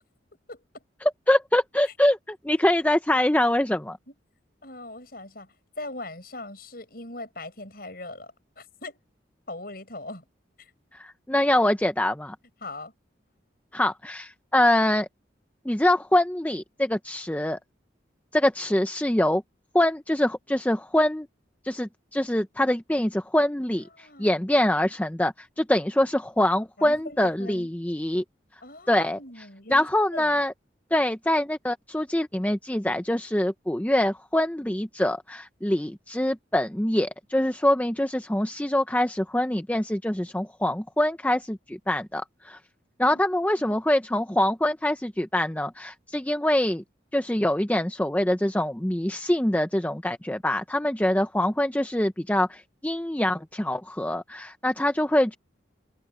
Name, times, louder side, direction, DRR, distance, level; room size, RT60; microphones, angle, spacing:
voice 1, 0.5-0.8 4.1-4.2 4.6-9.0 9.5-10.2 10.6-10.7 12.6-12.9 23.8-24.4 26.8-27.7 28.6-30.4 43.1-43.2, left 2 dB, 50° left, 7.7 m, -40 dB
voice 2, 1.0-4.0 10.9-12.4 13.7-15.1 15.7-17.6 18.3-19.4 19.7-21.3 21.6-28.2 28.9-29.2 29.7-30.5 30.9-42.6 43.0-46.8 47.1-55.4, left 1 dB, 10° left, 0.6 m, -24 dB
head